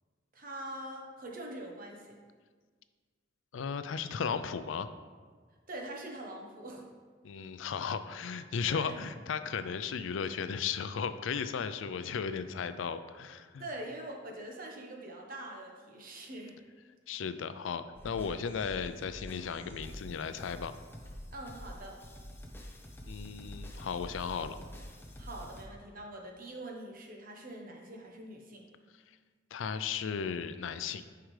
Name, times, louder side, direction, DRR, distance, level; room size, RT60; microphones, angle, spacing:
voice 1, 0.3-2.2 5.7-6.8 8.7-9.0 13.6-16.5 21.3-22.0 25.2-28.7, right 1 dB, 45° right, 0 dB, 1.1 m, -44 dB
voice 2, 3.5-4.9 7.2-13.6 17.1-20.7 23.1-24.6 29.5-31.0, left 6 dB, 90° left, 11 dB, 0.4 m, -35 dB
sound 1, 17.9-25.7, left 1 dB, 10° left, 0.6 m, -47 dB
10.0 x 4.7 x 3.2 m, 1.5 s
head